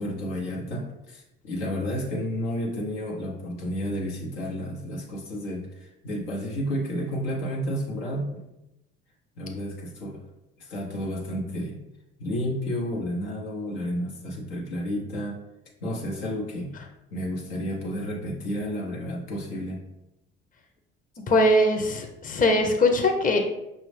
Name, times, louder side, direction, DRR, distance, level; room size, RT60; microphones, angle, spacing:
voice 1, 0.0-8.5 9.4-10.2 10.6-11.8 12.2-15.4 15.8-16.7 17.1-19.8, equal, 85° left, -2 dB, 1.0 m, -31 dB
voice 2, 21.3-23.4, left 1 dB, 30° left, 3 dB, 0.7 m, -21 dB
5.3 x 2.4 x 3.3 m, 0.91 s
hypercardioid pair, 60°, 29 cm